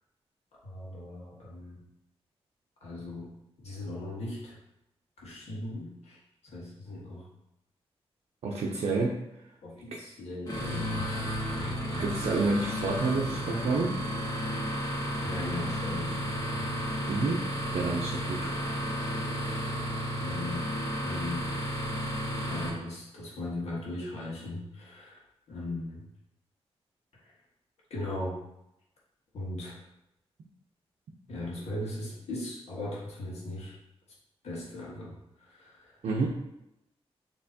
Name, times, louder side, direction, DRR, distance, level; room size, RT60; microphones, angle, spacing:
voice 1, 0.5-1.8 2.8-3.3 3.6-4.6 5.2-7.3 9.6-12.1 15.2-16.7 20.2-20.7 21.0-21.5 22.5-25.2 25.5-26.0 27.9-28.3 29.3-29.8 31.3-33.8 34.4-36.0, left 1 dB, 90° left, -5 dB, 1.5 m, -38 dB
voice 2, 8.4-9.2 12.0-14.0 17.1-17.4 17.7-18.5 36.0-36.3, right 3 dB, 85° right, -2 dB, 0.6 m, -29 dB
sound 1, 10.5-22.7, equal, 35° left, 1.5 m, -33 dB
6.2 x 3.0 x 2.8 m, 0.87 s
wide cardioid pair, 105°, 11 cm